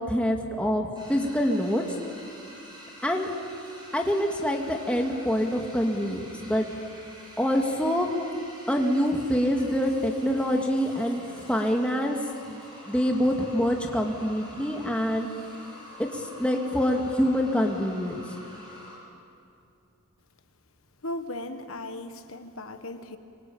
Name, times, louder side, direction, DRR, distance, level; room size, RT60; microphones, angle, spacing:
voice 1, 0.0-1.8 3.0-3.3 3.9-6.7 7.4-8.1 8.7-11.2 11.5-12.2 12.4-12.6 12.9-15.3 16.0-18.2, equal, 5° left, 1 dB, 2.2 m, -25 dB
sound 1, 0.9-19.0, equal, 20° right, 7.7 m, -47 dB
voice 2, 21.0-23.2, left 1 dB, 65° left, 7 dB, 1.3 m, -37 dB
26.0 x 24.5 x 8.8 m, 2.6 s
head